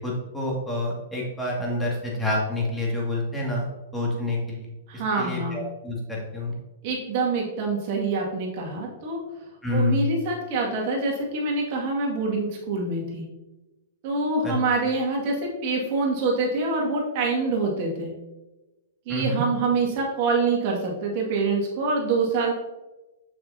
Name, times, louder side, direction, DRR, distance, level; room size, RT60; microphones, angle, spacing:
voice 1, 0.0-3.6 3.9-6.6 9.6-10.1 14.4-14.6 19.1-19.4, left 1 dB, 10° left, -3 dB, 2.3 m, -28 dB
voice 2, 4.9-5.6 6.8-9.2 9.7-13.2 14.0-18.1 19.1-22.5, right 3 dB, 45° right, -2 dB, 2.1 m, -25 dB
6.6 x 6.5 x 2.8 m, 1.0 s
hypercardioid pair, 110°, 0 cm